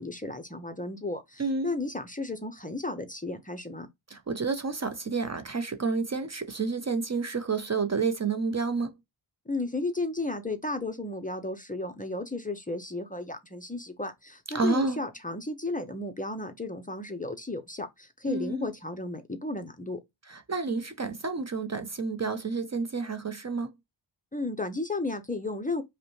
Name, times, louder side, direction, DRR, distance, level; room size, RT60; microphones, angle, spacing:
voice 1, 0.0-3.9 9.5-20.0 24.3-25.8, left 2 dB, 20° left, 0.6 m, -34 dB
voice 2, 1.4-1.7 4.1-8.9 14.5-15.0 18.3-18.7 20.3-23.7, right 4 dB, 35° right, 0.6 m, -30 dB
5.2 x 2.1 x 3.0 m
wide cardioid pair, 135°, 46 cm